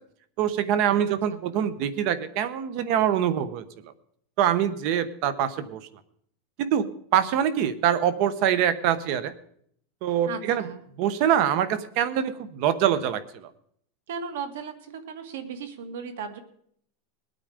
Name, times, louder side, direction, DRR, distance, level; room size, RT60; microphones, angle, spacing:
voice 1, 0.4-3.6 4.4-5.8 6.6-6.9 7.1-9.3 10.0-10.6 11.0-13.5, right 10 dB, 45° right, 15 dB, 1.0 m, -24 dB
voice 2, 1.1-1.4 10.3-10.8 14.1-16.4, right 6 dB, 85° right, 8 dB, 2.2 m, -36 dB
20.5 x 9.0 x 5.1 m, 0.65 s
supercardioid pair, 160°, 0 cm